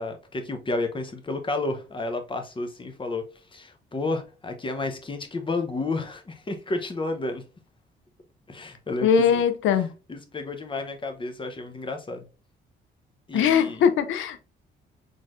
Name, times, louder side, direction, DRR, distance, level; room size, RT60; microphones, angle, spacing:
voice 1, 0.0-3.2 3.5-7.4 8.5-9.4 10.1-12.2 13.3-13.8, left 2 dB, 25° left, 0.8 m, -31 dB
voice 2, 9.0-9.9 13.3-14.4, left 7 dB, 85° left, 0.6 m, -21 dB
4.2 x 3.2 x 2.4 m
cardioid pair, 90°, 20 cm